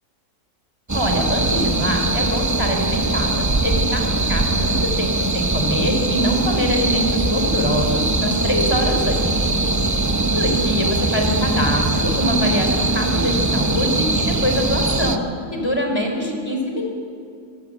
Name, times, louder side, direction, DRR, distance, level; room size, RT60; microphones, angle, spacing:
voice 1, 0.9-9.2 10.3-15.2 15.5-16.9, equal, 15° left, 2 dB, 3.9 m, -24 dB
sound 1, 0.9-15.2, right 2 dB, 25° right, 0.3 m, -21 dB
26.0 x 16.5 x 7.8 m, 2.3 s
omnidirectional pair, 1.6 m